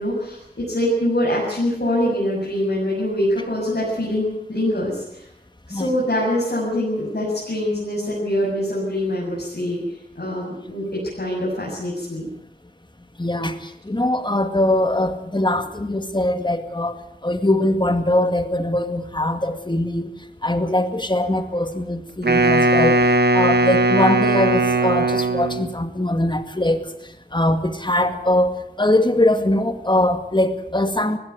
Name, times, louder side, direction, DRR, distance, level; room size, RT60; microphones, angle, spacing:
voice 1, 0.0-5.3 5.7-9.8 10.2-12.3, left 1 dB, 75° left, -6 dB, 7.4 m, -24 dB
voice 2, 13.2-20.1 20.4-31.2, left 1 dB, 30° left, 8 dB, 2.1 m, -22 dB
Wind instrument woodwind instrument, 22.2-25.7, right 2 dB, 80° right, 1.6 m, -18 dB
20.0 x 16.0 x 9.5 m, 0.84 s
wide cardioid pair, 50°, 17 cm